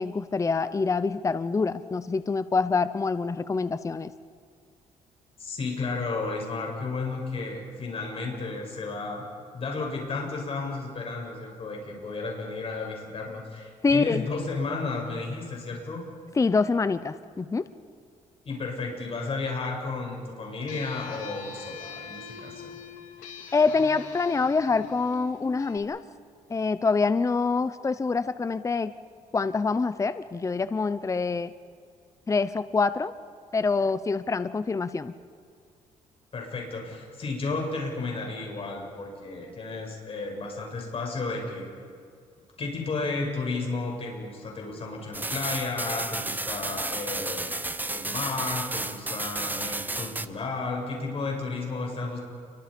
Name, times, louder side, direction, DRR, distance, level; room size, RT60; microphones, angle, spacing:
voice 1, 0.0-4.1 13.8-14.2 16.4-17.6 23.5-26.0 26.5-28.9 29.3-31.5 32.3-33.1 33.5-35.1, left 4 dB, 25° left, 13 dB, 0.8 m, -25 dB
voice 2, 5.4-9.2 9.5-16.1 18.4-22.8 36.3-41.7 42.6-52.2, left 3 dB, 45° left, 0 dB, 7.8 m, -33 dB
sound 1, 20.7-25.8, left 5 dB, 90° left, 3.5 m, -42 dB
sound 2, 45.1-50.3, right 2 dB, 15° right, 1.2 m, -32 dB
30.0 x 24.0 x 5.4 m, 2.3 s
cardioid pair, 90°, 13 cm